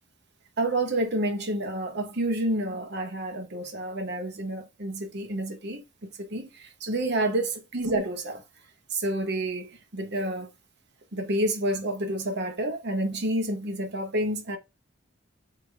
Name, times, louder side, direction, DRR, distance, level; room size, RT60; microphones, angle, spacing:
voice 1, 0.6-8.4 8.9-10.5 11.1-14.6, right 1 dB, 55° right, 1.1 m, -29 dB
4.8 x 2.9 x 3.5 m
head